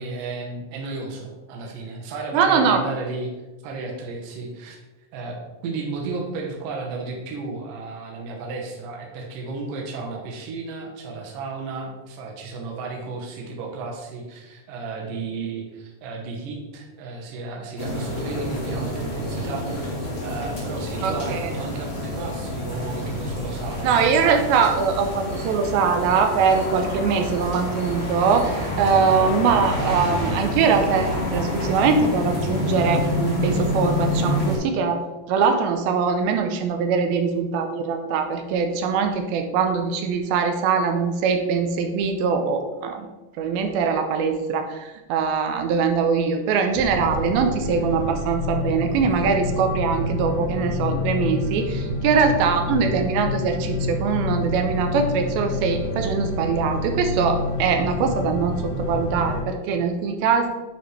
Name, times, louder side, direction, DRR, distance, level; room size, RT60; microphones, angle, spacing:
voice 1, 0.0-3.3 3.6-4.8 5.1-23.9, right 3 dB, 70° right, 0 dB, 2.6 m, -33 dB
voice 2, 2.3-2.8 21.0-21.5 23.8-35.0 35.3-43.1 43.4-60.5, right 5 dB, 90° right, 5 dB, 2.5 m, -22 dB
sound 1, 17.8-34.6, left 1 dB, 30° left, 1.3 m, -27 dB
sound 2, 46.7-59.4, left 2 dB, 60° left, 1.7 m, -28 dB
9.4 x 4.2 x 3.2 m, 1.1 s
omnidirectional pair, 4.3 m